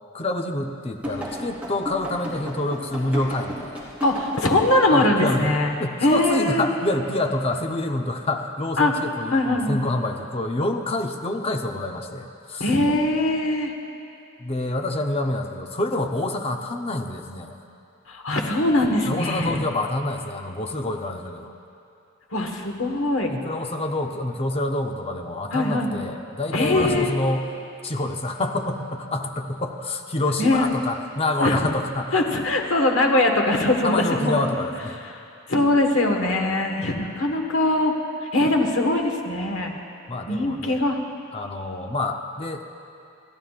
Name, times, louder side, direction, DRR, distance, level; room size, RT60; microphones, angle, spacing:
voice 1, 0.1-3.8 4.9-12.7 14.4-17.6 19.1-21.5 23.3-27.5 27.8-32.2 33.8-35.0 40.1-40.8 41.3-42.6, left 2 dB, 30° left, 4 dB, 0.7 m, -27 dB
sound 1, 1.0-4.5 5.0-5.1 5.3-5.5, equal, 5° right, 3.3 m, -33 dB
voice 2, 4.0-5.7 6.0-6.7 8.8-8.9 9.3-9.8 12.6-13.7 18.1-19.6 22.3-23.3 25.5-26.0 26.5-27.1 30.4-30.7 31.4-31.6 32.1-34.4 35.5-37.9 38.3-39.7 40.3-41.0, left 2 dB, 70° left, 2 dB, 1.5 m, -21 dB
28.5 x 12.5 x 2.5 m, 2.7 s
head